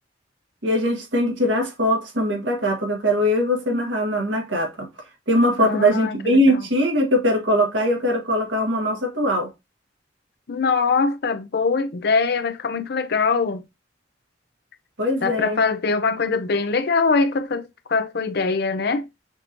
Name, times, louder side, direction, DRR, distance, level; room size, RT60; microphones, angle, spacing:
voice 1, 0.6-4.9 5.3-9.5 15.0-15.6, equal, 80° right, 1.6 m, -21 dB
voice 2, 5.6-6.7 10.5-13.6 15.2-19.1, left 4 dB, 60° left, 0.6 m, -23 dB
5.9 x 2.7 x 2.9 m
head